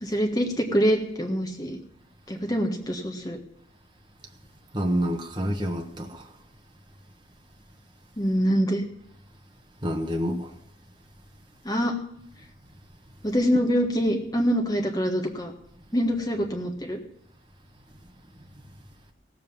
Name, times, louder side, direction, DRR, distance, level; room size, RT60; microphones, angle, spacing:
voice 1, 0.0-1.8 2.3-3.4 8.2-8.8 11.6-11.9 13.2-15.5 15.9-17.0, equal, 20° left, 1.5 m, -25 dB
voice 2, 4.7-6.3 9.8-10.5, equal, 25° right, 1.3 m, -28 dB
16.5 x 7.7 x 7.1 m
head